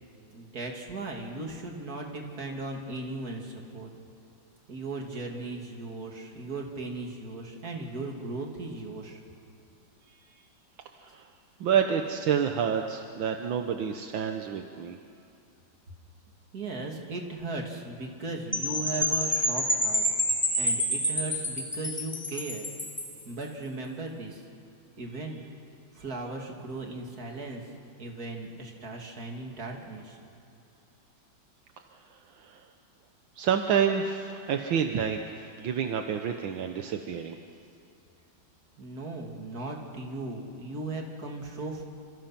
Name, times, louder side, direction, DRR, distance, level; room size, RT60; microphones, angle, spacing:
voice 1, 0.3-3.9 4.7-9.2 16.5-20.0 20.6-22.7 23.2-24.4 25.0-25.4 25.9-27.6 28.0-30.2 38.8-41.8, right 2 dB, 50° right, 1 dB, 3.1 m, -37 dB
voice 2, 11.6-15.0 32.4-32.6 33.4-37.4, right 7 dB, 75° right, 5 dB, 1.8 m, -28 dB
Percussion / Wind chime, 18.5-23.2, equal, 5° left, 2.9 m, -28 dB
27.5 x 27.0 x 5.9 m, 2.5 s
omnidirectional pair, 2.1 m